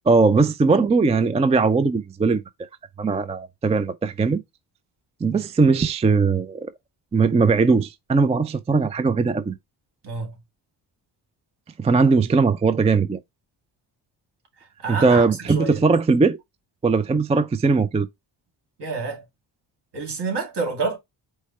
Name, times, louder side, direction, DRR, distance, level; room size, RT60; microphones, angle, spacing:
voice 1, 0.1-2.7 3.0-4.4 5.2-6.7 7.1-9.6 11.8-13.2 14.9-16.4 16.8-18.1, right 4 dB, 15° right, 0.3 m, -19 dB
voice 2, 10.0-10.3 14.8-15.8 18.8-19.3 19.9-21.0, right 4 dB, 60° right, 2.0 m, -28 dB
4.8 x 2.2 x 4.2 m
cardioid pair, 75°, 46 cm